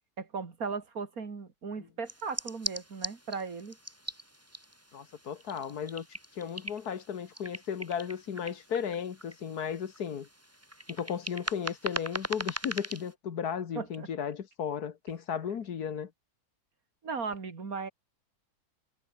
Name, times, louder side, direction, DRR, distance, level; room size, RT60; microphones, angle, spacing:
voice 1, 0.2-3.8 13.8-14.1 17.0-17.9, right 5 dB, 65° right, 2.9 m, -37 dB
sound 1, 2.1-13.1, equal, 10° right, 4.9 m, -41 dB
voice 2, 4.9-6.1 6.4-10.3 10.9-16.1, left 7 dB, 85° left, 2.0 m, -35 dB
omnidirectional pair, 1.6 m